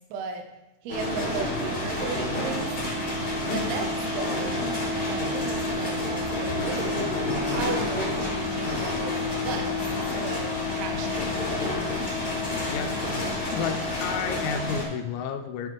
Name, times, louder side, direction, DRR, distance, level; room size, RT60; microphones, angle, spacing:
voice 1, 0.1-0.5 0.8-2.7 3.5-7.0 7.5-9.9 10.1-12.6, right 4 dB, 85° right, 4 dB, 2.2 m, -36 dB
sound 1, 0.9-14.8, left 2 dB, 25° left, 1.6 m, -28 dB
voice 2, 13.5-15.7, left 6 dB, 80° left, 5 dB, 2.9 m, -31 dB
12.5 x 5.7 x 3.1 m, 0.97 s
omnidirectional pair, 5.8 m